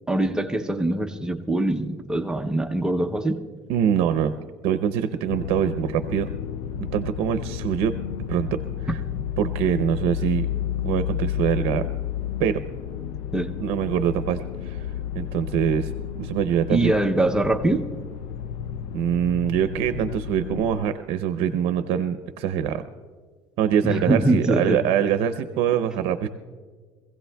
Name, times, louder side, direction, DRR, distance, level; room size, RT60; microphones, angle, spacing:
voice 1, 0.1-3.4 13.3-13.5 16.7-17.9 23.8-24.8, right 1 dB, 5° right, 5 dB, 0.6 m, -23 dB
voice 2, 3.7-4.3 4.6-6.3 6.8-7.9 8.3-8.6 9.4-10.5 10.8-11.8 12.4-12.6 13.6-14.8 15.1-15.9 16.2-16.9 18.9-22.8 23.6-26.3, right 9 dB, 70° right, 10 dB, 0.6 m, -24 dB
sound 1, 5.3-20.8, left 10 dB, 85° left, 0.5 m, -31 dB
25.0 x 16.0 x 2.3 m, 1.5 s
cardioid pair, 160°, 10 cm